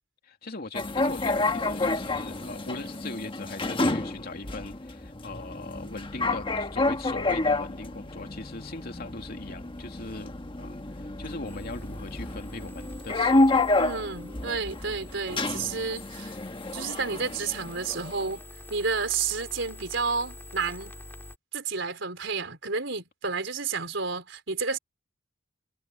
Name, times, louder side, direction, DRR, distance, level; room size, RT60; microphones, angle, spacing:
voice 1, 0.2-13.7 15.3-15.4, left 2 dB, 50° left, 2.7 m, -40 dB
sound 1, 0.7-18.3, left 2 dB, 25° left, 1.3 m, -29 dB
sound 2, 11.4-21.4, left 1 dB, 10° left, 3.0 m, -46 dB
voice 2, 13.8-16.3 16.7-18.4 18.7-20.9 21.5-24.8, right 4 dB, 70° right, 4.7 m, -31 dB
head